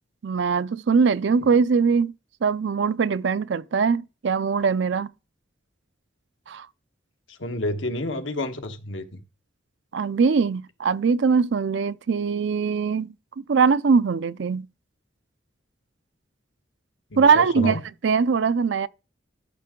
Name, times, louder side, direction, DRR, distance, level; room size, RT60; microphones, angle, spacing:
voice 1, 0.2-2.1 2.4-5.1 6.5-6.7 9.9-14.7 17.2-18.9, right 5 dB, 65° right, 0.4 m, -22 dB
voice 2, 7.3-9.2 17.1-17.8, left 1 dB, 85° left, 1.4 m, -30 dB
13.0 x 6.4 x 3.7 m
head